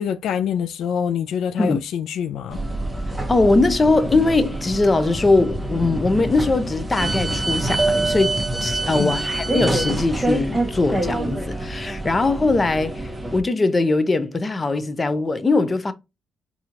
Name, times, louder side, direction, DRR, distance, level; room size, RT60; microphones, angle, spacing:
voice 1, 0.0-2.6 9.0-9.1, left 8 dB, 75° left, 0.3 m, -25 dB
sound 1, 2.5-13.4, right 2 dB, 10° right, 0.8 m, -26 dB
voice 2, 3.3-8.3 8.6-15.9, left 3 dB, 25° left, 0.6 m, -20 dB
4.3 x 2.7 x 2.5 m
cardioid pair, 90°, 0 cm